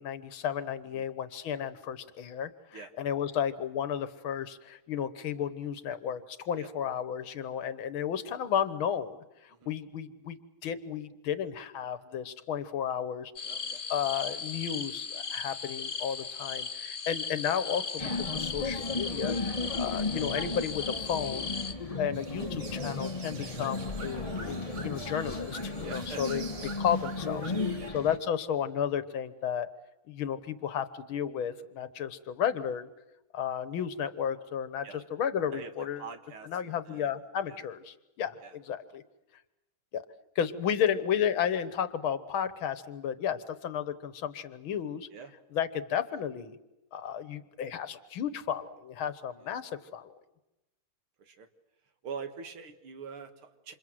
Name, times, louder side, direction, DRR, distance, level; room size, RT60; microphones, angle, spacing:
voice 1, 0.0-9.2 9.4-13.3 13.9-21.5 22.0-29.7 30.1-32.9 33.3-36.0 36.4-39.0 39.9-40.1 40.4-45.1 45.5-46.6 46.9-50.1, left 8 dB, 75° left, 13 dB, 2.0 m, -33 dB
sound 1, 13.4-21.7, left 5 dB, 40° left, 0.8 m, -37 dB
voice 2, 13.5-13.8 24.1-24.3 25.8-26.4 27.8-27.9 34.8-35.0 35.5-37.2 37.5-37.6 38.4-38.6 45.1-45.3 49.4-49.6 51.2-51.5 52.0-53.7, right 5 dB, 85° right, 8 dB, 2.7 m, -45 dB
sound 2, 18.0-28.2, left 3 dB, 20° left, 1.3 m, -35 dB
sound 3, 22.1-27.9, right 4 dB, 40° right, 1.5 m, -46 dB
28.0 x 27.0 x 7.8 m, 0.96 s
omnidirectional pair, 2.3 m